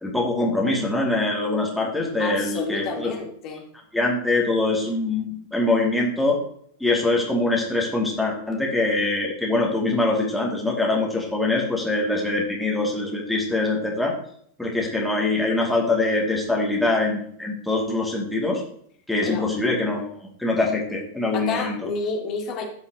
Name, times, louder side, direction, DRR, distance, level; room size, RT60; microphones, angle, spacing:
voice 1, 0.0-3.1 3.9-6.4 6.8-14.1 14.6-18.6 19.1-20.0 20.4-21.7, left 2 dB, ahead, -3 dB, 2.5 m, -23 dB
voice 2, 2.2-3.6 19.2-19.5 21.3-22.6, left 4 dB, 40° left, 1 dB, 2.2 m, -30 dB
14.5 x 5.6 x 3.0 m, 0.63 s
figure-of-eight pair, 90°, 0 cm